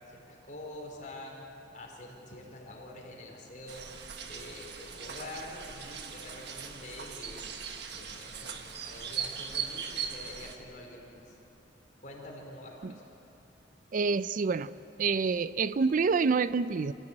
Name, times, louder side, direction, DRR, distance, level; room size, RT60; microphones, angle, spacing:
voice 1, 0.1-1.4 1.7-3.9 4.2-7.4 7.9-11.4 12.0-13.0, left 1 dB, 45° left, 4.7 m, -46 dB
sound 1, 3.7-10.6, right 7 dB, 65° right, 1.5 m, -39 dB
voice 2, 13.9-14.7 15.0-16.9, right 4 dB, 50° right, 0.4 m, -27 dB
26.0 x 15.0 x 8.7 m
head